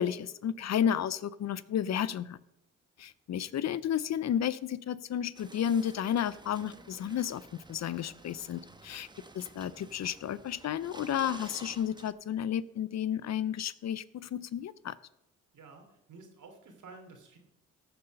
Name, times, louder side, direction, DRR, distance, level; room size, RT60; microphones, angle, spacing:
voice 1, 0.0-2.4 3.0-9.1 9.3-14.9, left 9 dB, 55° left, 18 dB, 0.6 m, -32 dB
Asda car park, 5.4-12.1, right 2 dB, 15° right, 1.1 m, -51 dB
voice 2, 15.5-17.4, right 3 dB, 65° right, 4 dB, 2.9 m, -52 dB
14.5 x 6.9 x 5.4 m, 0.86 s
supercardioid pair, 60°, 32 cm